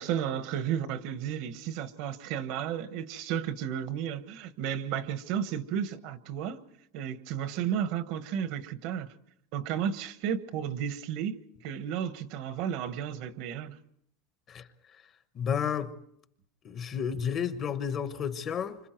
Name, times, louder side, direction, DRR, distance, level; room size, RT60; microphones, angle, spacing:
voice 1, 0.0-6.6 6.9-9.1 9.5-11.4 11.6-13.8, right 9 dB, 55° right, 1.2 m, -33 dB
voice 2, 15.3-15.9 16.6-18.8, left 7 dB, 30° left, 1.1 m, -31 dB
29.0 x 26.0 x 4.6 m
supercardioid pair, 150°, 0 cm